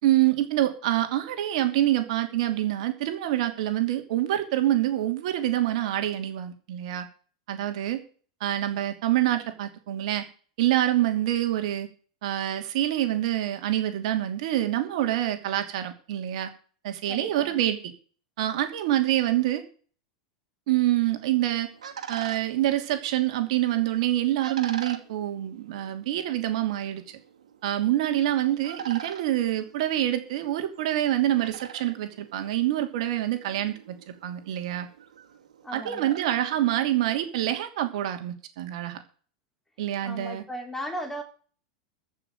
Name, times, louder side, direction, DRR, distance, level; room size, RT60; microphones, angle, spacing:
voice 1, 0.0-7.0 7.5-8.0 8.4-10.2 10.6-11.9 12.2-16.5 16.8-17.8 18.4-19.6 20.7-21.7 22.1-27.0 27.6-34.0 34.2-34.9 35.7-39.0 39.8-40.4, right 13 dB, 70° right, 2.8 m, -26 dB
voice 2, 17.1-17.6 35.6-36.2 40.0-41.2, equal, 5° left, 3.5 m, -36 dB
sound 1, 21.1-37.4, right 8 dB, 90° right, 2.4 m, -44 dB
14.0 x 6.0 x 9.0 m
hypercardioid pair, 115°, 4 cm